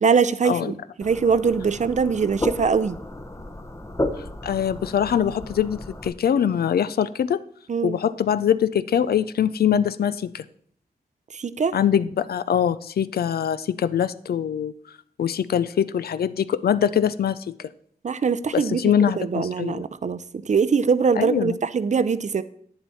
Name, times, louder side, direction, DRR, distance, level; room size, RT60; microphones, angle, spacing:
voice 1, 0.0-3.0 7.7-8.0 11.3-11.8 18.0-18.8 19.2-22.4, right 5 dB, 50° right, 15 dB, 0.5 m, -22 dB
sound 1, 1.0-6.1, left 1 dB, 15° left, 0.8 m, -33 dB
voice 2, 4.4-7.4 7.8-10.4 11.7-14.7 15.2-17.5 18.5-19.8 21.2-21.6, left 8 dB, 75° left, 15 dB, 0.4 m, -23 dB
8.9 x 7.1 x 4.1 m, 0.62 s
cardioid pair, 55°, 16 cm